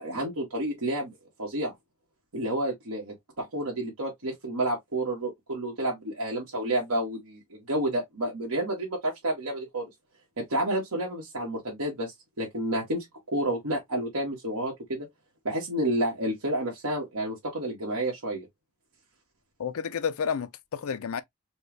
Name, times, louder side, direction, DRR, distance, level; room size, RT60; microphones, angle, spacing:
voice 1, 0.0-1.7 2.3-9.9 10.4-15.1 15.4-18.5, right 1 dB, 90° right, 1.4 m, -30 dB
voice 2, 19.6-21.2, left 7 dB, 80° left, 0.5 m, -30 dB
4.4 x 2.3 x 3.2 m
head